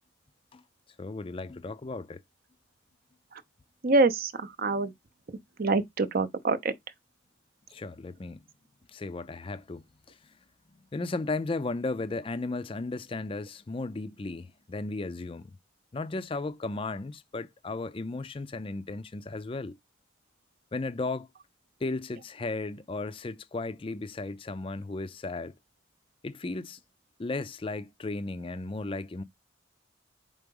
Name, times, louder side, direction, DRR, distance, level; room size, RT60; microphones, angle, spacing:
voice 1, 1.0-2.2 7.7-8.4 8.9-10.2 10.9-15.6 15.9-19.8 20.7-21.3 21.8-25.5 26.2-26.8 27.2-29.2, left 3 dB, 25° left, 0.4 m, -35 dB
voice 2, 3.8-4.9 5.6-6.7, right 3 dB, 45° right, 0.6 m, -25 dB
4.8 x 3.7 x 5.3 m
head